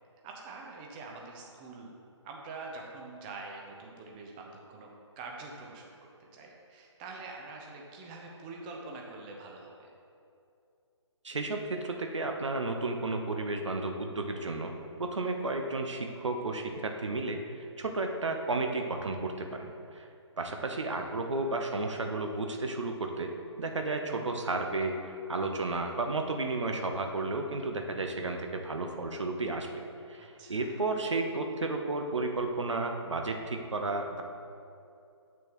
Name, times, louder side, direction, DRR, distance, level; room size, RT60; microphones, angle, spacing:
voice 1, 0.2-1.9 2.2-4.9 5.2-5.9 6.2-9.9 30.2-30.7, right 3 dB, 20° right, 0 dB, 0.7 m, -45 dB
voice 2, 11.2-20.1 20.4-23.3 23.6-25.0 25.3-29.7 30.1-34.2, right 2 dB, 75° right, 4 dB, 0.8 m, -33 dB
8.5 x 6.1 x 3.1 m, 2.6 s
figure-of-eight pair, 145°, 16 cm